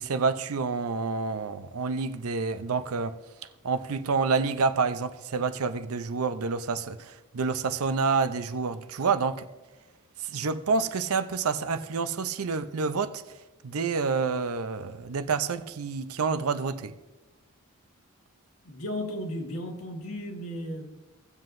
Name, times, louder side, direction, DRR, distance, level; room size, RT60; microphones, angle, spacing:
voice 1, 0.0-3.2 3.6-9.5 10.2-13.2 13.6-16.9, right 4 dB, 85° right, 0.6 m, -28 dB
voice 2, 18.6-20.9, equal, 80° left, 1.5 m, -35 dB
17.0 x 7.6 x 2.6 m
head